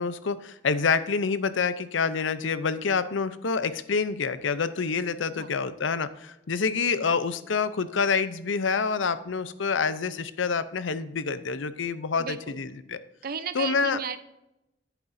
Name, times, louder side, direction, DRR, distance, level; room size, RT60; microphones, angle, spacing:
voice 1, 0.0-13.0 13.5-14.0, left 5 dB, 85° left, 14 dB, 0.6 m, -27 dB
voice 2, 12.2-12.6 13.2-14.2, right 7 dB, 50° right, 12 dB, 0.7 m, -34 dB
11.0 x 9.1 x 2.7 m, 0.89 s
head